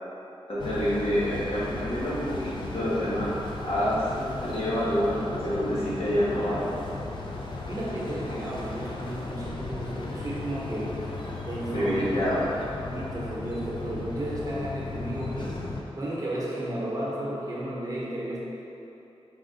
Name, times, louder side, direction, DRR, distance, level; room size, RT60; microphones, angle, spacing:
voice 1, 0.5-3.3 3.6-6.7 11.7-12.4, equal, 75° left, -9 dB, 1.2 m, -27 dB
sound 1, 0.6-15.8, left 2 dB, 45° left, 0.4 m, -36 dB
voice 2, 7.7-10.9 11.5-12.3 12.8-15.6 16.0-18.4, right 1 dB, 35° right, -6 dB, 0.8 m, -33 dB
4.9 x 2.5 x 3.8 m, 2.9 s
wide cardioid pair, 120°, 11 cm